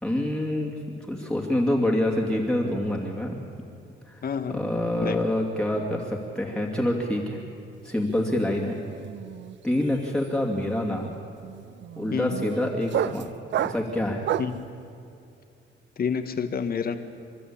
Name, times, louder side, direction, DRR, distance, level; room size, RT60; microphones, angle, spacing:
voice 1, 0.0-3.4 4.1-4.2 4.5-7.4 7.8-8.8 9.6-11.1 12.0-13.3 13.6-14.3, left 1 dB, 5° left, -2 dB, 2.5 m, -26 dB
voice 2, 4.2-4.6 5.0-5.2 12.1-12.4 14.4-14.5 16.0-17.0, left 6 dB, 50° left, 8 dB, 1.7 m, -28 dB
sound 1, 7.9-8.2 8.4-14.7, right 11 dB, 70° right, 0.7 m, -32 dB
30.0 x 12.5 x 8.8 m, 2.6 s
cardioid pair, 90°, 20 cm